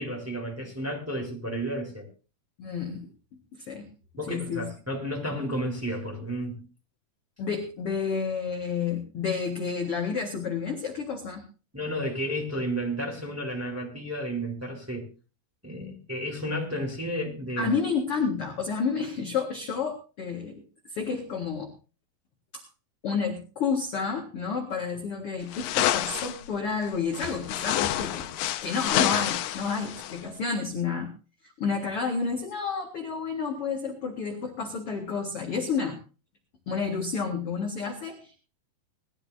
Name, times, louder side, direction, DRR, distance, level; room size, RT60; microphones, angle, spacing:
voice 1, 0.0-2.1 4.2-6.6 11.7-15.1 15.6-17.7, equal, 5° right, 3.4 m, -32 dB
voice 2, 2.6-3.1 3.5-3.9 4.3-4.7 7.4-11.4 17.6-20.6 20.9-21.7 22.5-22.6 23.0-28.3 28.6-31.1 31.4-36.0 36.7-38.3, left 5 dB, 50° left, 1.9 m, -30 dB
sound 1, 25.5-26.4 27.1-30.2, left 13 dB, 75° left, 2.7 m, -28 dB
20.5 x 13.5 x 2.8 m
omnidirectional pair, 5.0 m